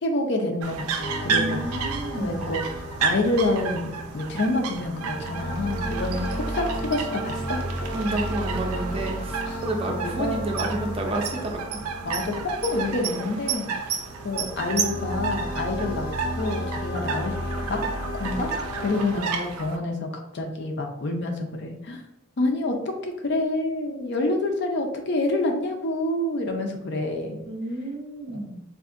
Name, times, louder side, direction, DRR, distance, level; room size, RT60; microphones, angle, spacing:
voice 1, 0.0-1.6 2.2-2.6 3.0-7.6 9.5-9.6 9.9-10.4 12.0-13.7 14.2-16.1 16.4-17.3 17.6-18.5 18.8-22.0 22.4-27.4 28.3-28.4, left 2 dB, 50° left, 3 dB, 0.5 m, -27 dB
sound 1, 0.6-19.8, right 5 dB, 85° right, 0.4 m, -32 dB
sound 2, 0.9-19.2, equal, 70° left, 0.9 m, -33 dB
voice 2, 1.3-2.4 7.9-11.8 27.4-28.6, right 1 dB, 25° right, 1 dB, 0.4 m, -30 dB
3.6 x 2.6 x 2.4 m, 0.91 s
head